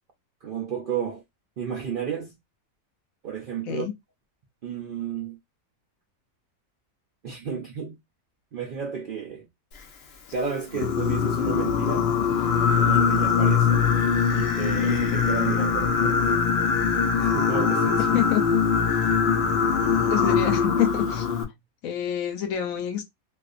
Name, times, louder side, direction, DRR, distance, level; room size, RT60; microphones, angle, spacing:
voice 1, 0.4-1.2 1.6-2.4 3.2-3.9 4.6-5.4 7.2-8.0 8.5-9.5 10.3-12.1 12.8-13.9 14.3-16.4 17.2-18.2, right 7 dB, 70° right, 0.5 m, -32 dB
Singing, 10.7-21.4, left 6 dB, 60° left, 0.7 m, -22 dB
voice 2, 18.1-18.4 20.1-21.3 21.8-23.0, left 10 dB, 75° left, 1.1 m, -26 dB
2.5 x 2.4 x 2.4 m
omnidirectional pair, 1.5 m